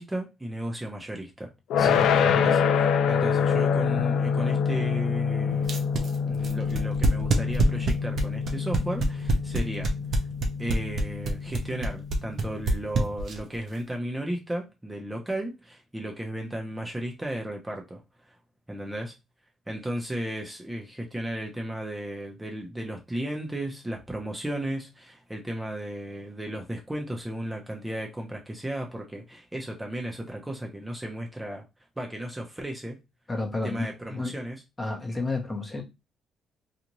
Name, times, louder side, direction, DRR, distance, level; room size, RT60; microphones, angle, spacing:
voice 1, 0.0-1.5 2.2-5.7 6.3-9.9 10.6-18.0 18.7-19.1 19.7-31.6 32.0-33.0 33.6-34.6, right 1 dB, 10° right, 0.7 m, -34 dB
sound 1, 1.7-12.7, left 6 dB, 80° left, 0.4 m, -26 dB
sound 2, 5.6-13.6, right 2 dB, 60° right, 0.7 m, -25 dB
voice 2, 33.3-34.3 34.8-35.8, left 2 dB, 20° left, 0.8 m, -31 dB
2.6 x 2.4 x 3.0 m
cardioid pair, 90°, 0 cm